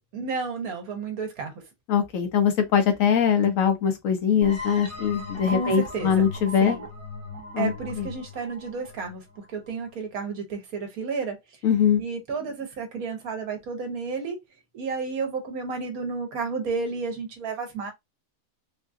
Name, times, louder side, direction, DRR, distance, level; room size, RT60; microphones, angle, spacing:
voice 1, 0.1-1.6 5.5-6.3 6.6-6.8 7.6-11.6 12.0-14.4 14.7-17.9, right 4 dB, 85° right, 1.5 m, -32 dB
voice 2, 1.9-6.8 7.5-7.7 11.6-12.0, left 7 dB, 70° left, 1.2 m, -22 dB
sound 1, 4.4-9.9, left 2 dB, 10° right, 1.0 m, -38 dB
3.8 x 2.4 x 2.5 m
omnidirectional pair, 1.5 m